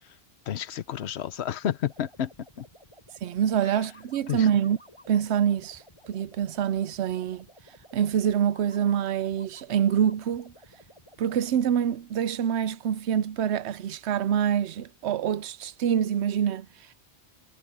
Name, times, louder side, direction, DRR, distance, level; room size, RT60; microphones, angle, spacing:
voice 1, 0.5-2.3 2.6-2.7 4.3-4.5, left 10 dB, 80° left, 1.0 m, -30 dB
sound 1, 1.8-11.9, equal, 30° left, 7.9 m, -54 dB
voice 2, 3.2-4.8 5.1-7.5 7.9-10.5 11.2-16.9, right 9 dB, 90° right, 0.9 m, -26 dB
omnidirectional pair, 1.1 m